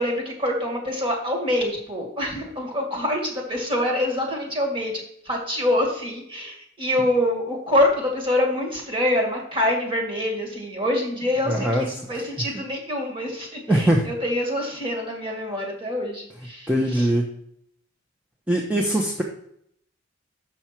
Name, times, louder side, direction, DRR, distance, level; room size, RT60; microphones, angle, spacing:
voice 1, 0.0-17.1, left 1 dB, 25° right, 1 dB, 2.0 m, -25 dB
voice 2, 11.5-11.8 12.1-12.2 13.7-14.1 16.7-17.3 18.5-19.2, right 1 dB, 5° right, -1 dB, 0.7 m, -21 dB
7.0 x 5.9 x 4.5 m, 0.70 s
head